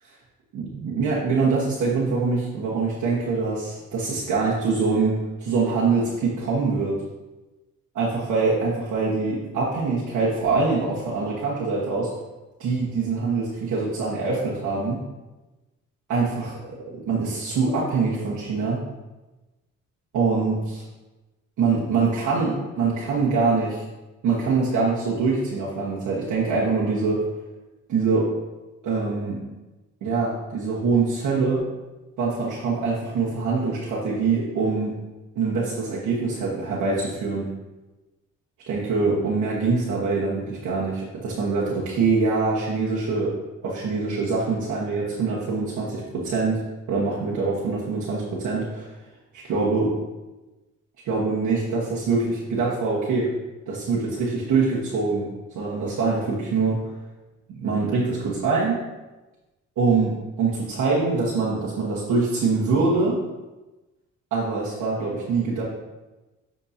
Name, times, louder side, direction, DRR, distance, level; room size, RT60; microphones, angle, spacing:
voice 1, 0.5-6.9 7.9-12.1 12.6-15.0 16.1-18.8 20.1-20.8 21.6-23.8 24.2-27.3 27.9-28.3 28.8-29.4 30.0-31.6 32.2-34.9 35.3-37.5 38.7-43.3 43.6-46.6 46.9-48.9 49.4-49.9 51.0-53.3 53.7-55.3 55.5-56.8 57.6-58.7 59.8-63.2 64.3-65.6, right 4 dB, 75° right, -7 dB, 1.5 m, -24 dB
9.9 x 4.4 x 2.8 m, 1.1 s
cardioid pair, 90°, 30 cm